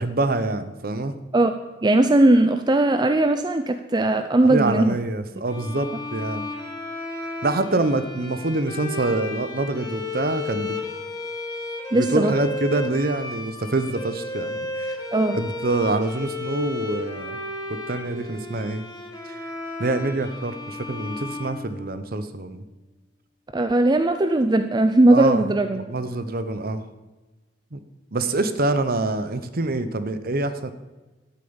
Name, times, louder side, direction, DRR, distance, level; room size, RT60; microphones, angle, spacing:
voice 1, 0.0-1.1 4.4-6.5 7.4-10.8 11.9-15.0 15.3-17.4 17.7-18.8 19.3-19.4 19.8-22.6 25.1-25.4 25.7-26.8 27.7-27.8 28.1-30.7, right 2 dB, 55° right, 12 dB, 0.9 m, -25 dB
voice 2, 1.8-5.0 11.9-12.3 15.1-15.4 23.5-25.8, right 2 dB, 25° right, 8 dB, 0.5 m, -18 dB
sound 1, 5.4-22.3, left 2 dB, 20° left, 2.0 m, -34 dB
12.0 x 8.7 x 7.1 m, 1.2 s
head